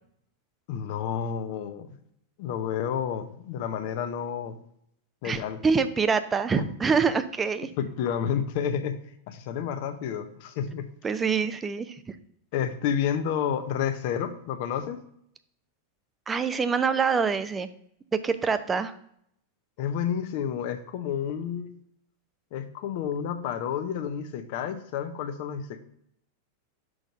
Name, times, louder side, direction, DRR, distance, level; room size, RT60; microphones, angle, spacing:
voice 1, 0.7-1.9 2.4-4.6 5.2-5.6 6.5-6.6 7.8-9.0 9.3-10.9 12.5-15.0 19.8-21.7 22.5-25.8, left 8 dB, 50° left, 9 dB, 0.9 m, -30 dB
voice 2, 5.2-7.7 11.0-12.0 16.3-17.7 18.2-18.9, right 5 dB, 15° right, 11 dB, 0.7 m, -25 dB
6.3 x 3.8 x 4.9 m, 0.71 s
figure-of-eight pair, 90°, 0 cm